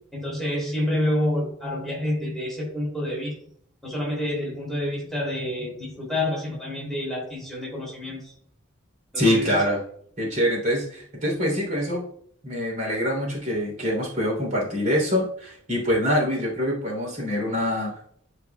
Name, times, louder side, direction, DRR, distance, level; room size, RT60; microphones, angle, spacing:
voice 1, 0.1-3.4 3.8-8.3 9.1-9.5, left 1 dB, ahead, -4 dB, 2.8 m, -28 dB
voice 2, 9.1-9.8 10.2-12.0 12.4-17.9, equal, 40° right, -2 dB, 3.2 m, -24 dB
12.5 x 4.9 x 2.3 m, 0.63 s
head